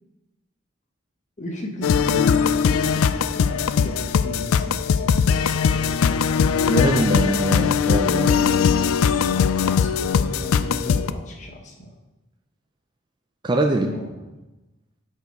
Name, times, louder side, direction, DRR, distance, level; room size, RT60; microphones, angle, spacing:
voice 1, 1.4-5.1 9.3-11.9 13.8-14.1, left 1 dB, 35° left, 1 dB, 1.1 m, -35 dB
sound 1, 1.8-11.1, left 6 dB, 85° left, 0.3 m, -20 dB
voice 2, 6.7-8.4 13.4-13.9, right 2 dB, 20° right, 3 dB, 0.4 m, -23 dB
7.9 x 4.6 x 4.7 m, 1.0 s
head